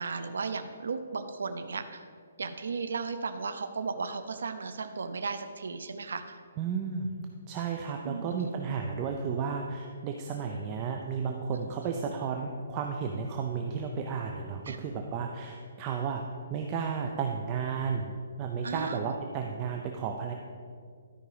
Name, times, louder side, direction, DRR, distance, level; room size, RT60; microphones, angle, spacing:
voice 1, 0.0-2.1 2.4-6.4 8.0-8.5 14.7-14.8 18.6-19.0, right 4 dB, 80° right, 8 dB, 0.6 m, -35 dB
voice 2, 6.6-7.1 7.5-20.3, right 6 dB, 20° right, 2 dB, 0.4 m, -33 dB
12.5 x 5.1 x 4.9 m, 2.1 s
hypercardioid pair, 170°, 0 cm